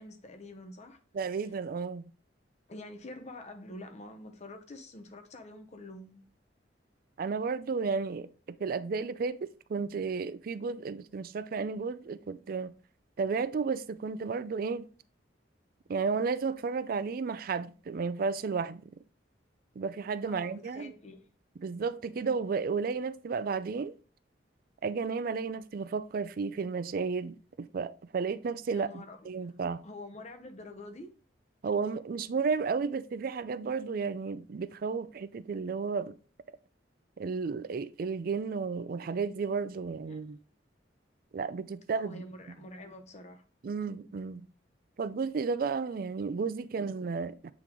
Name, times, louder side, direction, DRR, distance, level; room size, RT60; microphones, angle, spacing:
voice 1, 0.0-1.0 2.7-6.2 20.3-21.3 28.7-29.5 29.8-31.1 40.1-40.2 41.9-43.4, left 2 dB, 40° left, 0.8 m, -47 dB
voice 2, 1.1-2.1 7.2-8.3 8.6-12.7 13.2-14.9 15.9-18.8 19.8-20.9 21.6-24.0 24.8-29.8 31.6-36.1 37.2-40.4 41.3-42.2 43.6-44.4 45.0-47.5, right 5 dB, 55° right, 0.4 m, -33 dB
8.3 x 3.7 x 3.0 m
head